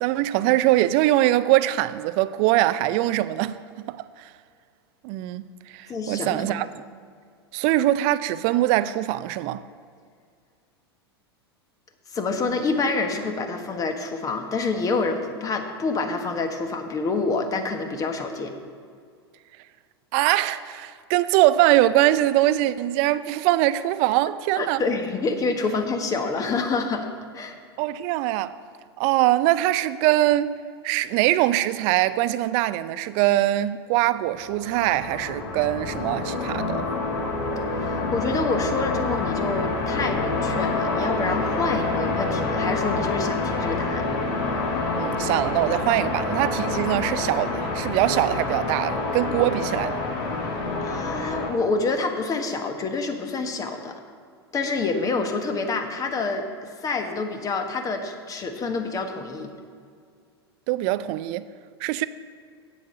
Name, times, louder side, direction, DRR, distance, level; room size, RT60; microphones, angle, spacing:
voice 1, 0.0-3.6 3.9-4.3 5.0-6.7 7.5-9.6 20.1-24.8 27.8-28.5 29.0-30.5 30.8-36.9 45.0-50.0 60.7-61.4 61.8-62.0, right 15 dB, 45° right, 0.5 m, -22 dB
voice 2, 5.9-6.6 12.1-18.5 24.6-27.1 27.3-27.6 37.7-44.1 50.8-54.0 54.5-59.5, left 3 dB, 25° left, 1.3 m, -27 dB
sound 1, 34.3-51.5, left 3 dB, 50° left, 1.8 m, -27 dB
8.5 x 8.0 x 6.7 m
hypercardioid pair, 95°, 13 cm